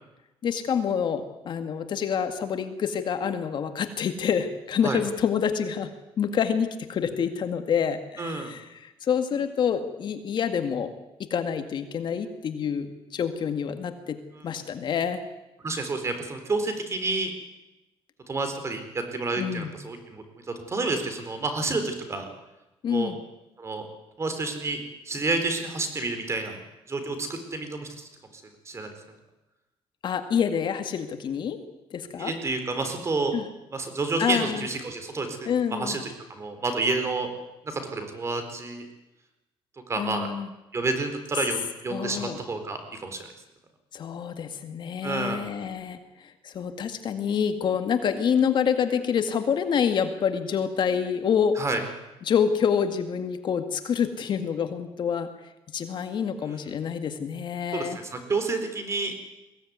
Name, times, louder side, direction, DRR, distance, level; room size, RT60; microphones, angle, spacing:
voice 1, 0.4-10.9 11.2-15.2 19.4-19.8 22.8-23.2 30.0-31.6 31.9-32.3 33.3-33.5 34.2-34.7 35.5-36.0 40.0-40.5 41.9-42.4 43.9-51.6 52.2-55.3 55.7-58.0, left 7 dB, 50° left, 8 dB, 2.1 m, -27 dB
voice 2, 8.2-8.5 14.3-14.5 15.6-17.3 18.3-22.3 22.9-23.1 23.6-23.8 24.2-26.6 26.9-28.1 28.7-28.9 32.2-33.3 33.7-36.0 36.3-37.3 37.6-38.8 39.9-40.3 40.7-43.3 45.0-45.4 51.6-51.8 57.7-59.1, right 3 dB, 30° right, 7 dB, 4.1 m, -29 dB
22.5 x 17.0 x 9.5 m, 1.0 s
cardioid pair, 130°, 10 cm